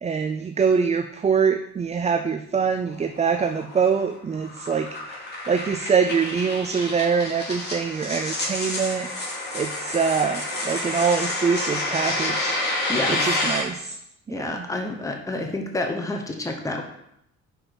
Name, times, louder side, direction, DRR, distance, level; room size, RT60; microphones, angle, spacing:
voice 1, 0.0-12.6 13.1-14.0 14.3-14.7, right 6 dB, 25° right, 7 dB, 0.4 m, -24 dB
sound 1, 2.9-13.6, left 2 dB, 35° left, 2.7 m, -29 dB
voice 2, 12.9-13.2 14.3-16.8, left 2 dB, 10° left, 3 dB, 0.9 m, -29 dB
6.0 x 4.7 x 4.8 m, 0.77 s
cardioid pair, 90°, 30 cm